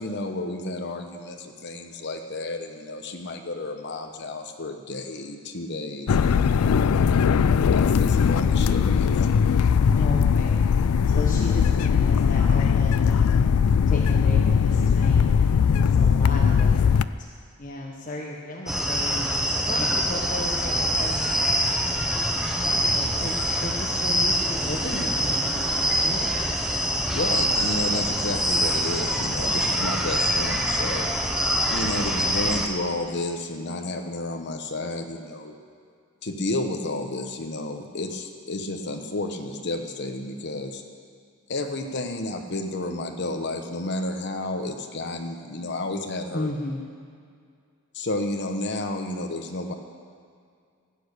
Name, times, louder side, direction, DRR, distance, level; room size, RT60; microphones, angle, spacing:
voice 1, 0.0-6.2 7.7-9.1 27.1-31.1 31.7-35.6 36.2-40.8 41.5-46.5 47.9-49.7, left 2 dB, 55° left, 4 dB, 1.1 m, -31 dB
sound 1, 6.1-17.0, left 6 dB, 90° left, 0.4 m, -20 dB
voice 2, 6.7-7.2 9.9-10.6 11.0-13.5 13.9-17.3 17.6-19.2 19.6-21.2 22.5-26.3 46.3-46.8, left 1 dB, 35° left, -2 dB, 1.3 m, -35 dB
sound 2, 18.7-32.7, equal, 5° right, 0.9 m, -24 dB
15.0 x 8.7 x 6.7 m, 2.2 s
head